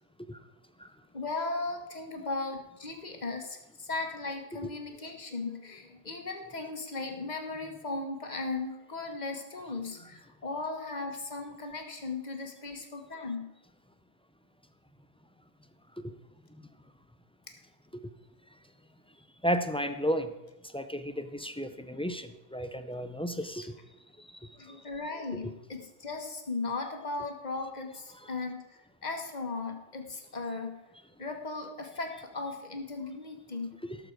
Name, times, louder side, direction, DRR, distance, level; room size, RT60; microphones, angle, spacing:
voice 1, 1.1-13.5 24.5-30.8 31.2-33.8, left 3 dB, 40° left, 4 dB, 1.5 m, -37 dB
voice 2, 19.4-20.3 20.7-23.7 33.8-34.0, equal, 10° left, 9 dB, 0.3 m, -32 dB
17.5 x 6.8 x 4.6 m, 1.0 s
omnidirectional pair, 1.1 m